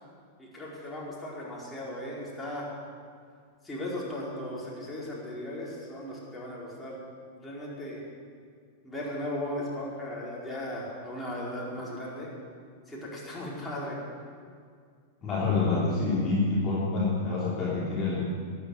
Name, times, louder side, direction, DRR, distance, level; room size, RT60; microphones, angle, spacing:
voice 1, 0.4-2.7 3.6-7.0 7.4-8.0 8.8-12.3 12.9-14.0, left 1 dB, 10° left, -6 dB, 4.6 m, -37 dB
voice 2, 15.2-18.3, left 3 dB, 30° left, -7 dB, 3.4 m, -27 dB
13.0 x 11.0 x 7.9 m, 2.1 s
figure-of-eight pair, 95°, 0 cm